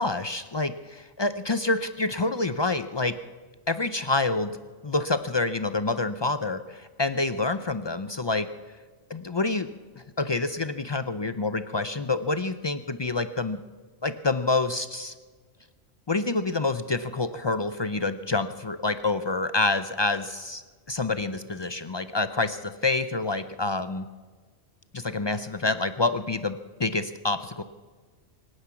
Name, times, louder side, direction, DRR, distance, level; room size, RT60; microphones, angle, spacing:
voice 1, 0.0-3.1 3.7-4.5 4.8-8.5 9.1-9.7 10.0-13.6 14.0-15.1 16.1-20.6 20.9-24.1 24.9-27.6, left 3 dB, 45° left, 12 dB, 0.3 m, -27 dB
24.5 x 9.8 x 5.8 m, 1.4 s
omnidirectional pair, 1.2 m